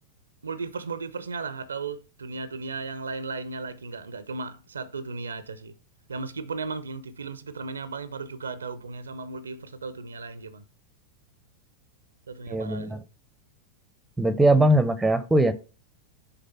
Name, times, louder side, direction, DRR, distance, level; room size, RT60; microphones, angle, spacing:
voice 1, 0.4-5.8 6.1-10.6 12.3-13.1, right 4 dB, 75° right, 0.5 m, -35 dB
voice 2, 12.5-13.0 14.2-15.5, right 1 dB, 5° right, 0.6 m, -20 dB
6.7 x 3.8 x 5.5 m
figure-of-eight pair, 90°, 0 cm